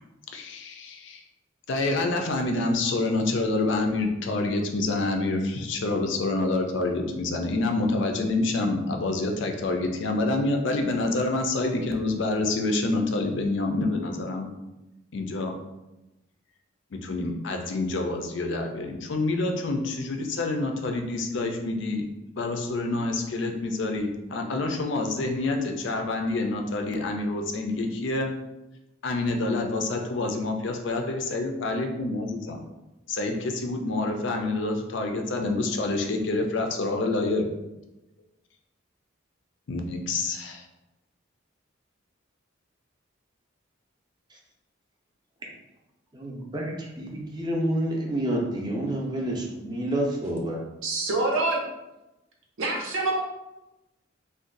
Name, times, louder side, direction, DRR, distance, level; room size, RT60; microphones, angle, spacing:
voice 1, 0.3-1.2 1.7-14.5 15.1-15.5 16.9-22.1 22.3-28.3 29.0-32.6 33.1-37.5 39.7-40.6, left 2 dB, 65° left, 3 dB, 0.4 m, -27 dB
voice 2, 46.1-50.6, right 1 dB, 20° right, -2 dB, 0.5 m, -29 dB
voice 3, 50.8-51.6 52.6-53.2, right 2 dB, 80° right, 0 dB, 0.7 m, -26 dB
2.5 x 2.3 x 3.7 m, 0.98 s
head